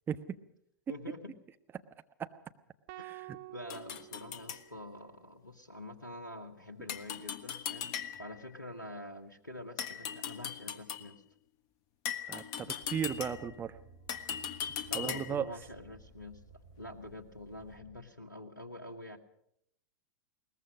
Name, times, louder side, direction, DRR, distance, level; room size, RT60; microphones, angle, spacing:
voice 1, 0.9-1.3 2.9-3.1 3.5-11.2 14.9-16.4 16.8-19.2, left 1 dB, 85° left, 7 dB, 1.4 m, -46 dB
sound 1, 2.9-5.2, right 19 dB, 45° right, 0.8 m, -50 dB
sound 2, 3.7-4.6 6.9-8.4 9.8-11.1 12.0-13.6 14.1-15.5, left 8 dB, 40° left, 1.4 m, -39 dB
voice 2, 12.3-13.7 14.9-15.4, right 8 dB, 20° right, 9 dB, 1.2 m, -36 dB
sound 3, 12.8-18.0, right 4 dB, 75° right, 4.2 m, -57 dB
21.5 x 19.5 x 6.3 m, 0.73 s
figure-of-eight pair, 95°, 10 cm